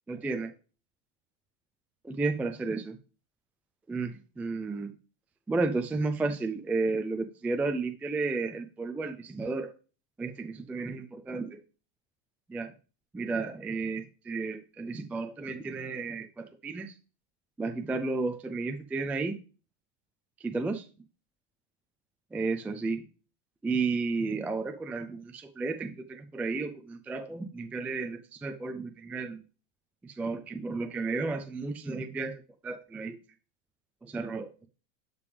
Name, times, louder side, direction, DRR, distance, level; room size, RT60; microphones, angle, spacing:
voice 1, 0.1-0.5 2.0-3.0 3.9-4.9 5.5-9.7 10.2-11.6 12.5-12.7 13.1-16.9 17.6-19.3 20.4-20.9 22.3-23.0 23.6-29.4 30.0-33.2 34.0-34.7, right 3 dB, 5° right, 6 dB, 0.3 m, -32 dB
12.0 x 5.2 x 3.3 m, 0.35 s
supercardioid pair, 140°, 35 cm